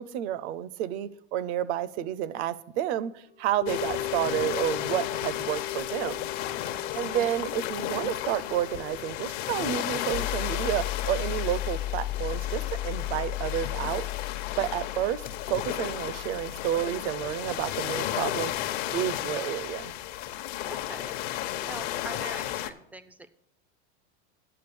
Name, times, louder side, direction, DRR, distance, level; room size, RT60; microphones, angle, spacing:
voice 1, 0.0-6.3 7.0-14.1 14.6-15.2 15.5-18.5 18.9-19.9, right 11 dB, 70° right, 19 dB, 0.7 m, -30 dB
sound 1, 3.6-13.9 14.2-14.3, left 12 dB, 85° left, 1.1 m, -40 dB
sound 2, 3.7-22.7, left 13 dB, 65° left, 0.9 m, -34 dB
voice 2, 6.6-7.2 14.6-14.9 20.7-21.2 21.6-23.3, right 2 dB, 5° right, 13 dB, 0.3 m, -44 dB
sound 3, 10.1-18.2, left 16 dB, 45° left, 0.5 m, -35 dB
8.8 x 6.6 x 6.9 m, 0.74 s
supercardioid pair, 125°, 34 cm